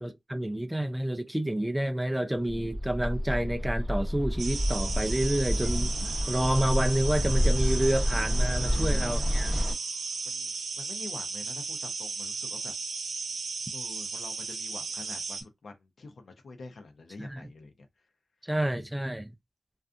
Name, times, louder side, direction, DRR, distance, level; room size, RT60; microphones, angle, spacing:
voice 1, 0.0-9.5 17.2-17.5 18.4-19.3, right 1 dB, 10° right, 0.3 m, -29 dB
Bird, 2.4-9.7, equal, 5° left, 0.8 m, -28 dB
sound 1, 4.4-15.4, right 4 dB, 90° right, 0.5 m, -35 dB
voice 2, 8.5-9.1 10.2-12.7 13.7-17.9, left 3 dB, 75° left, 0.6 m, -46 dB
2.5 x 2.3 x 2.4 m
cardioid pair, 55°, 0 cm